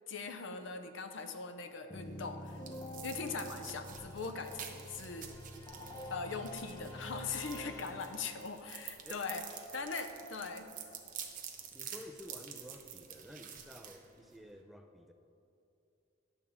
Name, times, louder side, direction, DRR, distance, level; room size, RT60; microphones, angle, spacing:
voice 1, 0.1-2.6 3.0-5.3 6.1-9.4 9.7-10.7, left 4 dB, 70° left, 8 dB, 0.6 m, -41 dB
sound 1, 1.9-8.7, equal, 20° left, 0.9 m, -47 dB
sound 2, 1.9-14.6, right 8 dB, 40° right, 0.7 m, -49 dB
voice 2, 7.6-8.1 9.0-9.3 11.7-15.1, equal, ahead, 4 dB, 0.4 m, -52 dB
10.5 x 3.6 x 7.1 m, 2.7 s
head